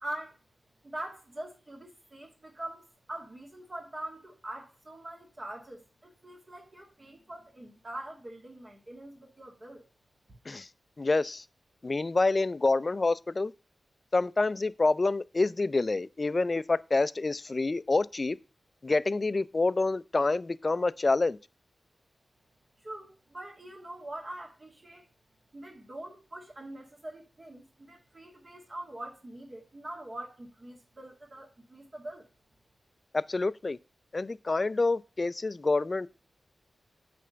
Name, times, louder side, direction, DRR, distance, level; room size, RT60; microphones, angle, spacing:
voice 1, 0.0-0.4 0.8-9.8 22.8-25.1 25.5-32.3, right 1 dB, 45° right, 2.0 m, -43 dB
voice 2, 11.0-11.4 11.8-13.5 14.1-18.4 18.8-21.4 33.1-33.8 34.1-36.1, left 3 dB, 45° left, 0.4 m, -27 dB
8.5 x 3.5 x 6.7 m
cardioid pair, 45°, 0 cm